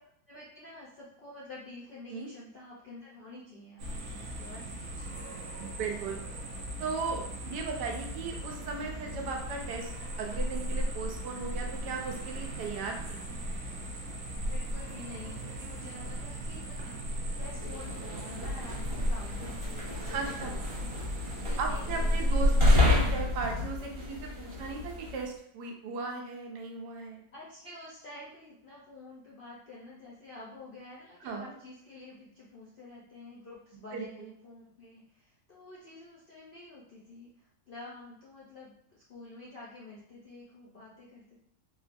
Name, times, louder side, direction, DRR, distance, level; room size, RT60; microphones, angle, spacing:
voice 1, 0.3-5.4 14.4-20.9 21.4-23.0 27.3-41.4, left 2 dB, 65° left, -6 dB, 0.5 m, -49 dB
sound 1, 3.8-22.8, equal, 65° right, 0.7 m, -33 dB
voice 2, 5.6-6.2 6.8-9.9 10.2-13.2 20.1-20.5 21.6-27.2 31.2-31.5 33.9-34.3, right 4 dB, 85° right, 1 dB, 1.3 m, -37 dB
sound 2, 17.5-25.3, left 2 dB, 35° right, 0.5 m, -32 dB
3.7 x 2.4 x 2.5 m, 0.70 s
omnidirectional pair, 1.8 m